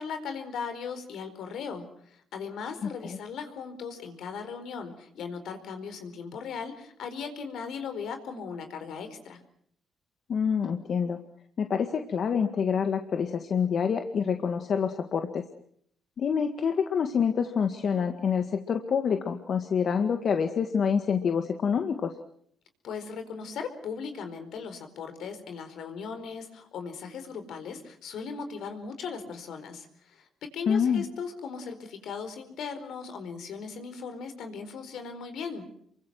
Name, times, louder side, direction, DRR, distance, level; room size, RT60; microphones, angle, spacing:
voice 1, 0.0-9.4 22.8-35.7, left 5 dB, 75° left, 8 dB, 4.6 m, -38 dB
voice 2, 2.8-3.2 10.3-11.2 11.6-15.4 16.2-22.2 30.7-31.0, left 6 dB, 55° left, 6 dB, 2.0 m, -27 dB
28.0 x 24.0 x 6.1 m, 0.65 s
cardioid pair, 90°, 0 cm